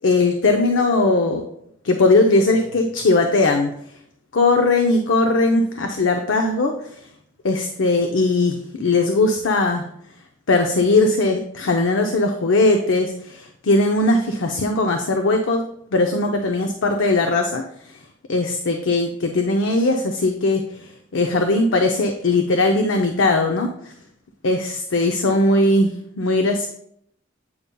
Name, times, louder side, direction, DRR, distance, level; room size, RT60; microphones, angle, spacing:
voice 1, 0.0-1.4 1.8-3.7 4.3-6.7 7.4-9.9 10.5-15.6 15.9-17.9 18.3-23.9 24.4-26.7, left 2 dB, 70° left, 3 dB, 0.6 m, -19 dB
8.6 x 5.3 x 2.3 m, 0.71 s
head